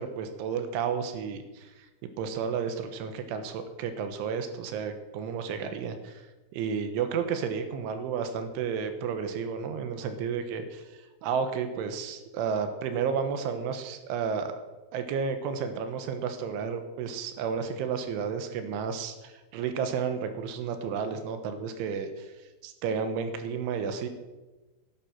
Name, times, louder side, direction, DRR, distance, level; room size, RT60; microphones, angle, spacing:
voice 1, 0.0-1.9 2.2-6.2 6.5-10.8 11.2-14.5 14.9-22.3 22.6-24.1, right 6 dB, 80° right, 8 dB, 3.4 m, -32 dB
13.0 x 10.0 x 6.1 m, 1.1 s
omnidirectional pair, 5.6 m